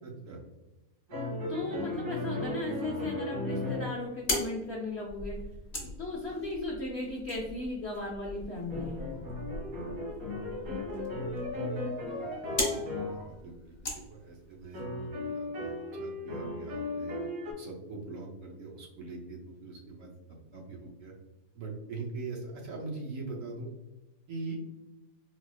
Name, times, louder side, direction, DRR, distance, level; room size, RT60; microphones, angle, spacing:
voice 1, 0.0-0.4 5.7-5.9 9.1-9.2 12.2-13.8 14.1-17.2 17.6-21.1 21.5-23.7 24.3-24.6, right 3 dB, 65° right, -1 dB, 0.9 m, -42 dB
sound 1, 1.1-4.1 7.9-8.0 8.7-13.3 14.7-17.5, left 1 dB, 90° right, 2.1 m, -36 dB
voice 2, 1.5-5.4 6.0-9.0, left 2 dB, 70° left, -2 dB, 0.6 m, -36 dB
sound 2, 3.9-14.8, left 2 dB, 35° left, 1.0 m, -39 dB
4.1 x 2.3 x 2.3 m, 1.1 s
omnidirectional pair, 1.7 m